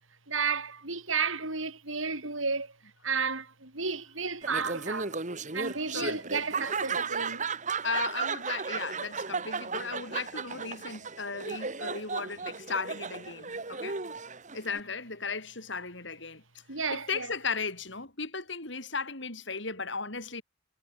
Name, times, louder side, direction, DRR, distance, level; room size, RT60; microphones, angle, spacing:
voice 1, 0.3-2.7 3.0-5.1 5.5-7.5 16.7-17.3, right 5 dB, 85° right, 7.8 m, -32 dB
Laughter, 4.4-14.8, right 5 dB, 40° right, 1.9 m, -35 dB
voice 2, 7.8-14.0 14.5-16.4 16.9-20.4, left 4 dB, 65° left, 6.6 m, -36 dB
head